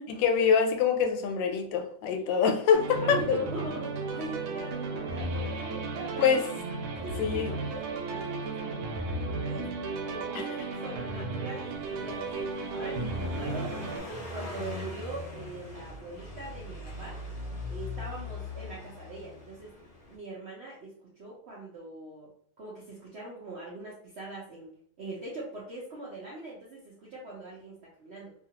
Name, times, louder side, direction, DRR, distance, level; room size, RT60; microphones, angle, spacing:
voice 1, 0.1-3.4 6.2-6.4 7.2-7.6 10.3-10.6 13.0-13.3, left 6 dB, 90° left, 5 dB, 1.3 m, -25 dB
sound 1, 2.7-14.0, right 3 dB, 85° right, 1.3 m, -34 dB
voice 2, 3.0-6.4 7.0-9.7 10.1-13.7 14.0-17.2 17.7-19.7 20.1-22.3 22.6-24.7 25.0-28.3, right 2 dB, 65° right, -6 dB, 0.6 m, -42 dB
Car passing by, 11.7-20.2, left 2 dB, 65° left, 0.5 m, -41 dB
2.8 x 2.4 x 2.8 m, 0.62 s
omnidirectional pair, 1.9 m